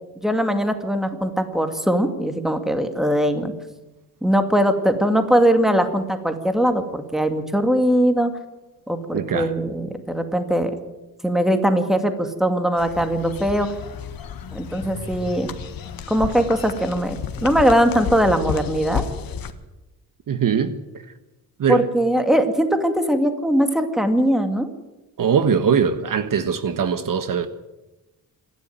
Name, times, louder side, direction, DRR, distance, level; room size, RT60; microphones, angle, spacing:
voice 1, 0.2-3.5 4.2-8.3 8.9-10.7 11.2-13.7 14.5-15.5 16.1-19.0 21.7-24.7, equal, ahead, 2.3 m, -20 dB
voice 2, 9.1-9.5 20.3-20.7 21.6-21.9 25.2-27.5, right 7 dB, 60° right, 1.4 m, -21 dB
sound 1, 12.8-19.5, left 7 dB, 65° left, 1.7 m, -32 dB
27.0 x 11.5 x 9.4 m
cardioid pair, 120°, 38 cm